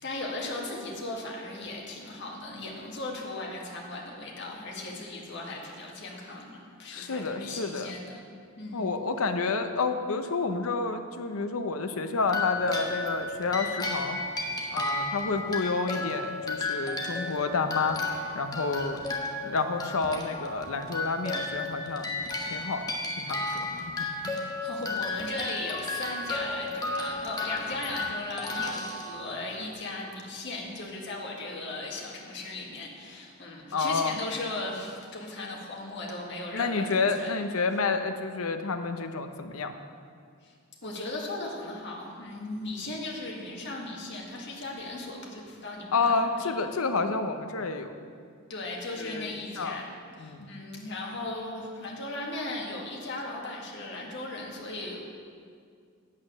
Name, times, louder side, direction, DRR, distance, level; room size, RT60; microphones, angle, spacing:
voice 1, 0.0-8.2 8.6-8.9 24.2-37.4 40.4-40.5 40.8-46.5 48.5-49.9 50.2-55.0, left 2 dB, 55° left, -2 dB, 1.8 m, -37 dB
voice 2, 6.9-7.9 8.7-14.2 14.7-18.0 18.3-19.0 19.4-22.1 22.5-22.9 23.2-24.5 33.7-34.2 36.5-39.7 45.9-47.9 49.0-49.8 50.2-50.5, left 4 dB, 75° left, 8 dB, 0.7 m, -29 dB
sound 1, 12.3-29.7, left 2 dB, 20° left, 1.0 m, -33 dB
8.7 x 8.5 x 6.3 m, 2.2 s
head